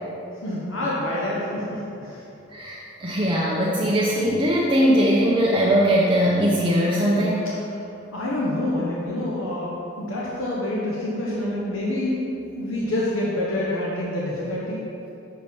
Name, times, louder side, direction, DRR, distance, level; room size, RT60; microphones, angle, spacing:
voice 1, 0.4-2.2 8.1-12.2 12.5-14.8, left 1 dB, 80° left, -6 dB, 1.0 m, -27 dB
voice 2, 2.5-7.5 12.2-12.3, equal, 25° right, -6 dB, 0.7 m, -20 dB
6.6 x 4.7 x 5.2 m, 2.9 s
head